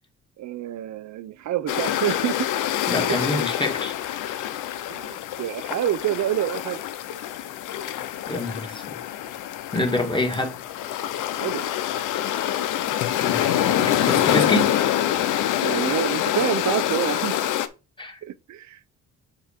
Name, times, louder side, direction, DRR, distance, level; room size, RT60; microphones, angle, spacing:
voice 1, 0.4-2.5 3.1-3.4 4.9-6.8 11.4-11.7 15.6-17.4 18.2-18.8, right 12 dB, 70° right, 0.8 m, -27 dB
sound 1, 1.7-17.7, left 11 dB, 85° left, 0.8 m, -26 dB
voice 2, 2.9-3.9 8.3-9.0 9.7-10.6 13.2-14.7 18.0-18.2, left 1 dB, 15° left, 1.9 m, -26 dB
8.3 x 3.0 x 5.0 m
cardioid pair, 90°, 30 cm